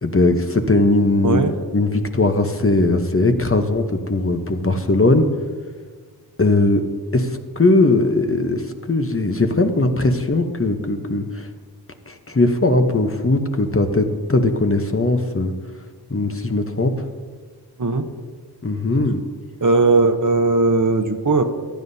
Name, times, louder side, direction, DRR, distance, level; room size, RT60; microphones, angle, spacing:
voice 1, 0.0-1.4 1.7-5.3 6.4-6.8 7.1-11.5 12.1-15.5 16.1-17.1 18.6-19.2, left 2 dB, 35° left, 6 dB, 0.8 m, -19 dB
voice 2, 1.2-1.5 17.8-18.1 19.6-21.4, right 3 dB, 50° right, 7 dB, 0.9 m, -17 dB
15.0 x 11.0 x 2.7 m, 1.5 s
wide cardioid pair, 60°, 39 cm